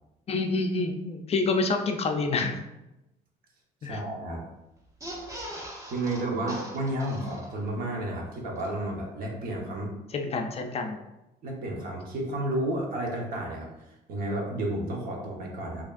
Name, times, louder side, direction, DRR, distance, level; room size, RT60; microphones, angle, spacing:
voice 1, 0.3-2.6 3.8-4.0 10.1-11.0, left 3 dB, 35° left, 4 dB, 0.4 m, -27 dB
voice 2, 3.9-4.4 5.9-9.9 11.4-13.7 14.1-15.8, right 1 dB, 60° right, -1 dB, 1.1 m, -31 dB
sound 1, 4.9-7.9 8.2-8.3 8.6-8.7, equal, 20° right, 0.8 m, -41 dB
4.9 x 2.8 x 2.5 m, 0.94 s
cardioid pair, 110°, 17 cm